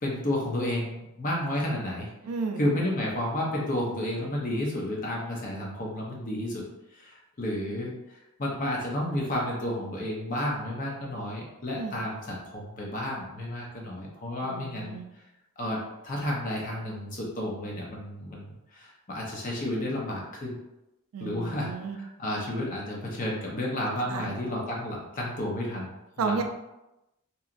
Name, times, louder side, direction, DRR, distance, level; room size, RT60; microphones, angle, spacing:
voice 1, 0.0-2.1 2.6-6.7 6.9-7.9 8.4-15.0 15.6-20.6 21.2-26.4, left 1 dB, 35° left, -3 dB, 0.7 m, -31 dB
voice 2, 2.2-2.6 11.8-12.0 14.4-15.0 21.1-22.0 24.1-24.4 26.2-26.4, right 4 dB, 70° right, 5 dB, 0.3 m, -32 dB
2.9 x 2.4 x 2.4 m, 0.95 s
head